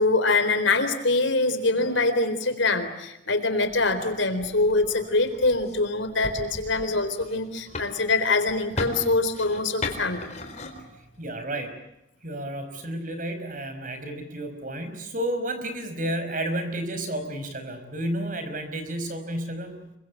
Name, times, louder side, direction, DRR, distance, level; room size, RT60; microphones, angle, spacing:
voice 1, 0.0-10.3, left 3 dB, 70° left, 10 dB, 3.9 m, -24 dB
sound 1, 3.6-11.5, left 2 dB, 35° left, 4.1 m, -38 dB
voice 2, 11.2-11.7 12.2-19.9, right 1 dB, 40° right, 8 dB, 5.2 m, -31 dB
27.5 x 24.5 x 8.1 m, 0.86 s
head